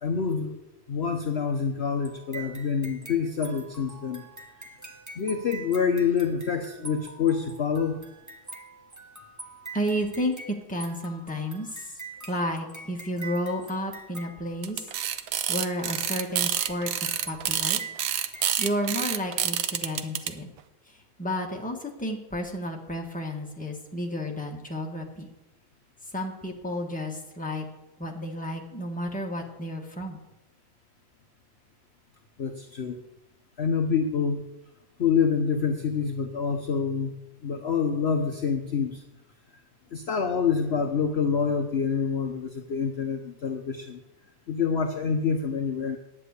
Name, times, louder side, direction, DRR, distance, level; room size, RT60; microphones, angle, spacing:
voice 1, 0.0-0.6 0.9-4.3 5.2-8.0 32.4-33.0 33.6-34.4 35.0-37.1 37.4-39.0 39.9-44.0 44.5-46.0, left 6 dB, 60° left, 4 dB, 0.7 m, -26 dB
sound 1, 2.0-15.1 15.8-19.2, right 3 dB, 15° right, 0.5 m, -45 dB
voice 2, 9.7-11.9 12.3-14.9 15.5-17.8 18.6-20.5 21.2-25.3 26.1-27.7 28.0-30.2, equal, 5° left, 0 dB, 1.3 m, -32 dB
sound 2, 14.6-20.3, right 10 dB, 80° right, 1.5 m, -27 dB
10.0 x 7.3 x 8.3 m, 0.93 s
omnidirectional pair, 2.2 m